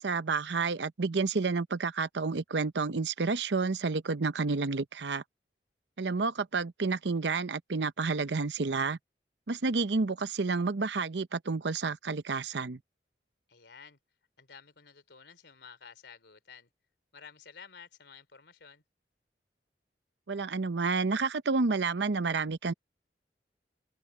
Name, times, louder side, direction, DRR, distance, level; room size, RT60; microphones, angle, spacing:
voice 1, 0.0-5.2 6.0-9.0 9.5-12.8 20.3-22.7, right 4 dB, 85° right, 0.7 m, -30 dB
voice 2, 13.5-14.0 14.4-16.7 17.1-18.8, left 6 dB, 80° left, 3.2 m, -52 dB
head